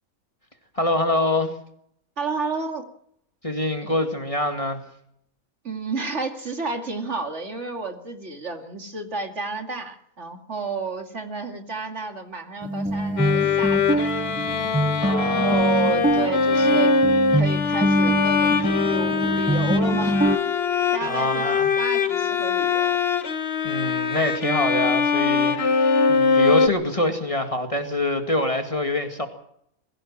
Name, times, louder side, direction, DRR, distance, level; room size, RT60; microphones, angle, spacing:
voice 1, 0.7-1.5 3.4-4.8 15.0-15.7 21.0-21.7 23.6-29.3, left 2 dB, 25° left, 5 dB, 2.2 m, -25 dB
voice 2, 2.2-2.9 3.8-3.9 5.6-14.3 15.1-16.9 17.3-20.2 20.9-21.5 21.8-23.0, right 4 dB, 50° right, 5 dB, 2.6 m, -31 dB
sound 1, 12.6-20.4, right 1 dB, 5° right, 1.0 m, -24 dB
Bowed string instrument, 13.2-26.7, left 5 dB, 45° left, 1.4 m, -22 dB
21.5 x 16.0 x 7.4 m, 0.72 s
omnidirectional pair, 1.5 m